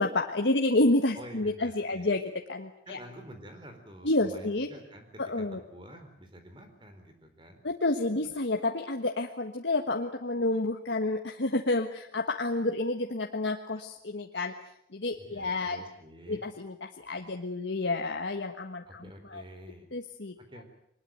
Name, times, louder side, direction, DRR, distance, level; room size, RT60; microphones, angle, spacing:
voice 1, 0.0-2.2 2.5-3.0 4.0-4.7 5.2-5.6 7.6-14.6 14.9-15.8 16.3-19.4 19.9-20.4, left 2 dB, 85° left, 3 dB, 1.4 m, -29 dB
voice 2, 1.1-2.1 2.9-5.1 5.4-7.6 15.2-16.4 18.9-19.9 20.5-20.6, equal, 25° right, 7 dB, 4.1 m, -48 dB
23.0 x 20.5 x 9.3 m, 0.74 s
head